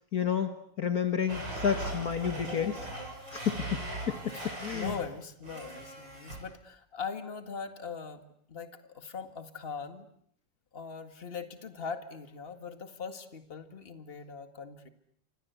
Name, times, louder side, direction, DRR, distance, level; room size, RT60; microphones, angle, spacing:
voice 1, 0.1-0.5 0.8-2.9 3.3-3.8 4.1-4.2 4.4-4.9, left 8 dB, 55° left, 8 dB, 1.9 m, -30 dB
Domestic sounds home sounds, 1.3-5.1 5.4-6.4, right 2 dB, 80° right, 8.4 m, -39 dB
voice 2, 4.3-8.2 8.5-10.1 10.7-14.9, left 5 dB, 30° left, 9 dB, 2.1 m, -41 dB
28.5 x 25.5 x 8.2 m, 0.68 s
omnidirectional pair, 1.9 m